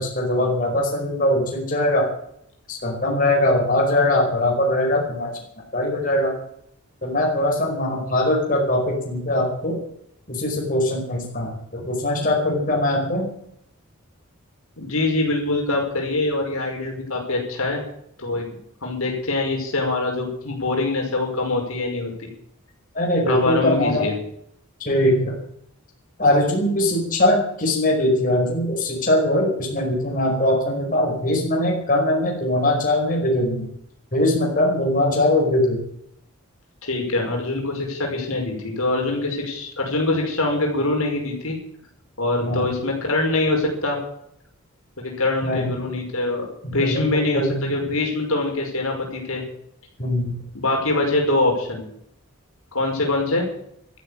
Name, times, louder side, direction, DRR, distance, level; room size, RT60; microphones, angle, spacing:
voice 1, 0.0-2.1 2.7-5.3 5.7-6.3 7.0-9.8 10.3-13.3 22.9-24.0 24.8-25.3 26.2-33.7 34.1-35.8 42.4-42.7 45.4-45.7 46.6-47.0 47.3-47.7 50.0-50.3, left 1 dB, 40° left, -1 dB, 5.1 m, -21 dB
voice 2, 14.8-17.8 18.2-18.5 18.8-22.3 23.3-24.1 36.8-41.6 42.2-44.0 45.0-46.5 46.7-49.5 50.5-51.8 52.7-53.4, left 2 dB, 70° left, 0 dB, 5.3 m, -24 dB
13.5 x 12.0 x 8.7 m, 0.72 s
head